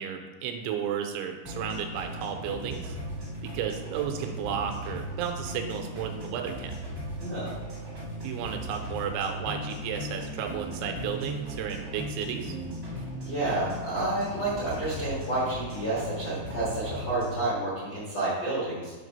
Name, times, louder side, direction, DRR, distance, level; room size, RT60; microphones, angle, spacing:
voice 1, 0.0-3.0 3.4-6.7 8.2-12.6, right 8 dB, 90° right, 4 dB, 3.0 m, -33 dB
sound 1, 1.4-17.4, equal, 70° right, 0.7 m, -37 dB
voice 2, 7.2-7.5 13.2-18.9, right 2 dB, 70° left, -9 dB, 1.0 m, -30 dB
8.4 x 3.2 x 5.3 m, 1.3 s
omnidirectional pair, 5.2 m